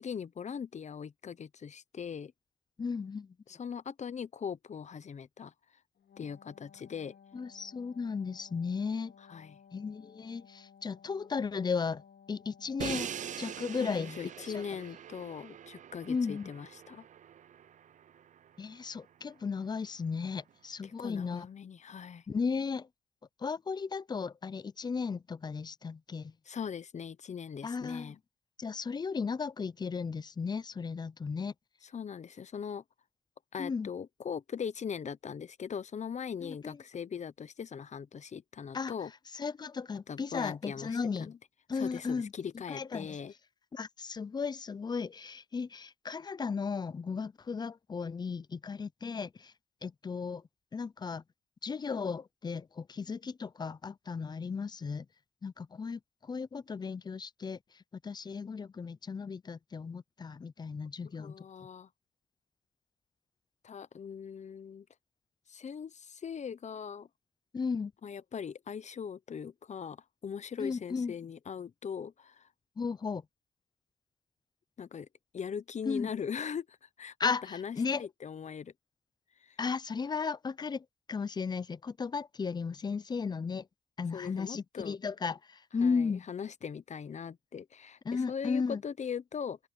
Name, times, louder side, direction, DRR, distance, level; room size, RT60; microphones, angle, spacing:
voice 1, 0.0-2.3 3.5-5.5 6.2-7.1 9.3-9.6 13.8-17.0 20.8-22.2 26.5-28.2 31.8-32.8 33.5-39.1 40.1-41.4 41.7-43.3 61.2-61.9 63.6-64.8 65.5-67.1 68.0-70.0 70.2-72.5 74.8-75.1 75.3-78.7 79.4-79.6 84.1-85.0 85.8-89.6, left 7 dB, 40° left, 0.8 m, -40 dB
voice 2, 2.8-3.3 7.3-9.1 9.7-12.0 12.3-13.1 13.4-14.2 14.5-14.6 16.1-16.5 18.6-21.5 22.3-22.9 23.4-26.3 27.6-28.1 28.6-31.5 33.6-33.9 36.4-36.8 38.7-38.9 39.3-41.3 41.7-42.3 42.7-43.2 43.7-49.5 49.8-50.4 50.7-51.2 51.6-55.1 55.4-57.6 58.0-61.3 67.5-67.9 70.6-71.1 72.8-73.2 75.9-76.1 77.2-78.1 79.6-83.7 84.0-86.3 88.1-88.8, left 5 dB, 20° left, 0.4 m, -35 dB
Wind instrument woodwind instrument, 6.0-13.9, left 7 dB, 60° left, 2.3 m, -58 dB
Crash cymbal, 12.8-18.8, right 9 dB, 40° right, 0.4 m, -43 dB
open air
cardioid pair, 110°, 19 cm